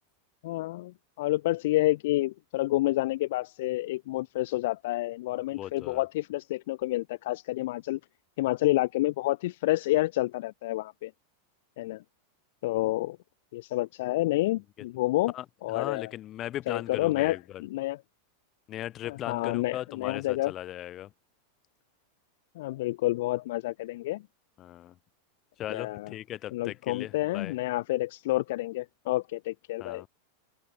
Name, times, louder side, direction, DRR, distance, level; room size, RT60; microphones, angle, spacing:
voice 1, 0.4-8.0 8.4-11.1 11.8-12.0 12.6-13.2 13.5-15.3 15.6-16.1 16.7-18.0 19.1-20.5 22.5-24.2 25.7-26.1 26.5-30.0, left 17 dB, 55° left, 1.7 m, -29 dB
voice 2, 5.5-6.0 15.3-17.6 18.7-21.1 24.6-25.0 25.6-27.6 29.8-30.1, left 13 dB, 25° left, 7.0 m, -38 dB
open air
supercardioid pair, 170°, 0 cm